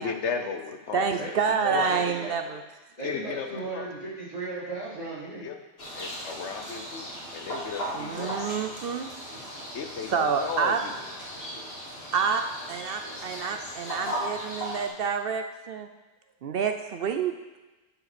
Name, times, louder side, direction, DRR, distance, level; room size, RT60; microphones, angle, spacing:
voice 1, 0.0-2.0 3.0-3.9 5.3-5.6 5.9-8.5 9.7-11.0, left 5 dB, 85° left, 6 dB, 1.2 m, -35 dB
voice 2, 0.9-2.6 7.9-9.1 10.1-10.8 12.1-12.4 12.7-15.9 16.4-17.3, right 6 dB, 65° right, 6 dB, 0.7 m, -28 dB
voice 3, 1.6-2.5 3.0-5.5, right 3 dB, 50° left, -9 dB, 3.8 m, -36 dB
sound 1, 5.8-14.9, equal, 65° left, 2.2 m, -37 dB
10.5 x 5.1 x 5.9 m, 1.2 s
omnidirectional pair, 1.1 m